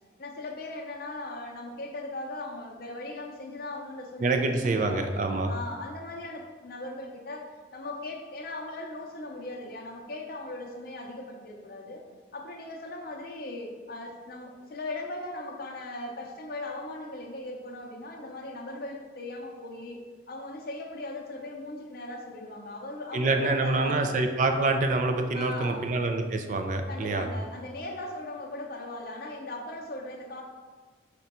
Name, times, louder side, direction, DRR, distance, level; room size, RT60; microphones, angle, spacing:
voice 1, 0.2-12.0 12.3-20.0 20.3-24.1 25.3-25.9 26.9-30.4, left 2 dB, 55° left, 0 dB, 0.6 m, -39 dB
voice 2, 4.2-5.5 23.1-27.3, right 3 dB, 45° right, 5 dB, 0.3 m, -26 dB
5.0 x 2.2 x 4.1 m, 1.5 s
head